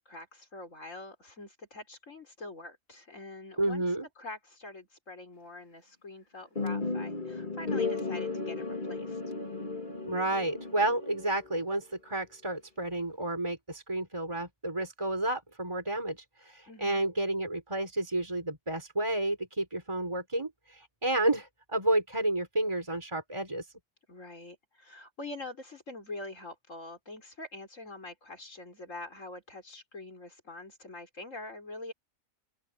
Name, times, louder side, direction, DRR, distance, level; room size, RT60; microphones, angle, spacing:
voice 1, 0.0-3.8 4.2-9.2 16.7-17.0 24.1-31.9, left 2 dB, 65° left, 5.0 m, -45 dB
voice 2, 3.6-4.1 10.0-23.7, right 1 dB, 20° right, 4.1 m, -31 dB
sound 1, 6.6-11.7, left 3 dB, 35° left, 2.4 m, -35 dB
open air
omnidirectional pair, 1.4 m